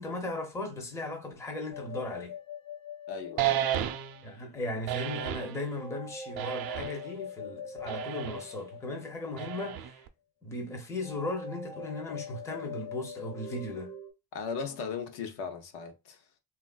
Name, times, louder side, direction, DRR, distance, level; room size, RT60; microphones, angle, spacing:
voice 1, 0.0-2.3 4.2-10.0 10.4-13.9, left 2 dB, 10° left, 0.4 m, -37 dB
sound 1, 1.7-4.4 5.8-9.7 11.0-14.1, left 4 dB, 40° left, 0.8 m, -43 dB
voice 2, 3.1-3.7 14.3-16.2, left 5 dB, 75° left, 0.7 m, -37 dB
sound 2, 3.4-4.3 4.9-5.6 6.4-7.1 7.9-8.5 9.4-10.1, right 11 dB, 65° right, 0.5 m, -32 dB
3.2 x 2.4 x 2.2 m
cardioid pair, 160°, 39 cm